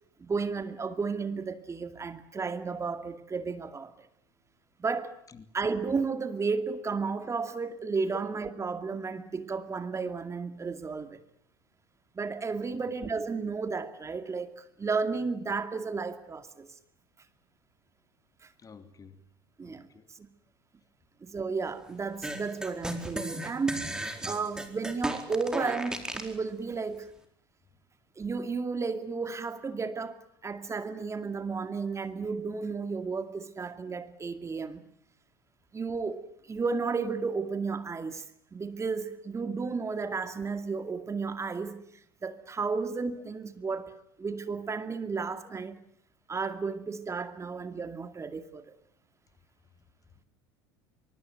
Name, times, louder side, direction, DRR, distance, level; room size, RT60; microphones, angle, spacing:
voice 1, 0.2-4.1 4.8-5.2 5.5-11.2 12.1-16.7 18.4-18.5 19.6-19.8 20.2-20.3 21.2-24.0 24.2-27.1 28.2-30.2 30.4-34.8 35.7-38.2 38.5-41.8 42.2-43.9 44.2-45.8 46.3-48.7, right 4 dB, 25° right, 2.3 m, -33 dB
voice 2, 18.6-19.2 19.6-20.1, left 5 dB, 25° left, 2.5 m, -52 dB
sound 1, 22.2-26.3, right 1 dB, 5° right, 4.4 m, -35 dB
24.0 x 24.0 x 9.2 m
hypercardioid pair, 75°, 13 cm